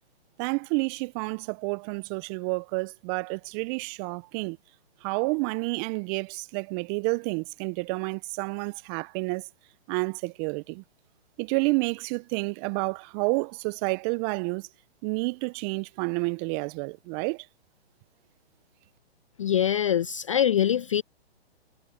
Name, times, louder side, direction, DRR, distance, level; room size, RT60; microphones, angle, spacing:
voice 1, 0.4-4.6 5.0-9.5 9.9-10.8 11.4-14.7 15.0-17.5, right 30 dB, 20° right, 0.7 m, -29 dB
voice 2, 19.4-21.0, left 10 dB, 30° left, 0.4 m, -24 dB
figure-of-eight pair, 130°, 32 cm